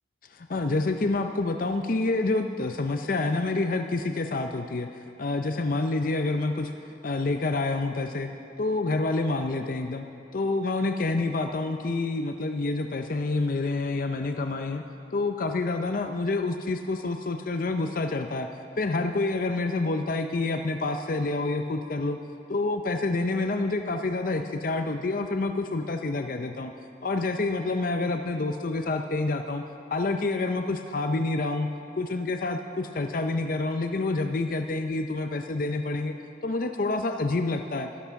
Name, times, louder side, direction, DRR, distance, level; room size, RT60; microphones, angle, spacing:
voice 1, 0.3-4.9 5.2-6.7 7.0-8.3 8.6-10.1 10.3-14.8 15.1-18.5 18.8-22.2 22.5-26.7 27.0-29.6 29.9-31.7 31.9-36.1 36.4-37.9, left 3 dB, 50° left, 6 dB, 0.5 m, -28 dB
12.5 x 12.5 x 5.8 m, 2.5 s
head